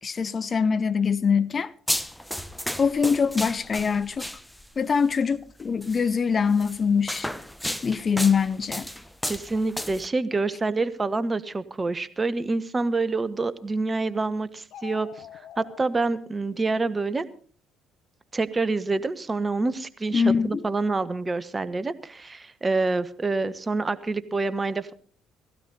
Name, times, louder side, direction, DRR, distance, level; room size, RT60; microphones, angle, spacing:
voice 1, 0.0-1.7 2.8-4.3 4.8-7.3 7.8-8.9 20.1-20.6, left 6 dB, 35° left, 0.7 m, -23 dB
sound 1, 1.9-4.8 5.8-6.0 6.6-10.1, equal, ahead, 1.0 m, -33 dB
voice 2, 9.3-15.2 15.6-17.3 18.3-24.9, right 3 dB, 25° right, 1.2 m, -27 dB
sound 2, 14.6-15.8, left 11 dB, 55° left, 1.1 m, -43 dB
17.0 x 16.5 x 4.1 m
figure-of-eight pair, 50°, 0 cm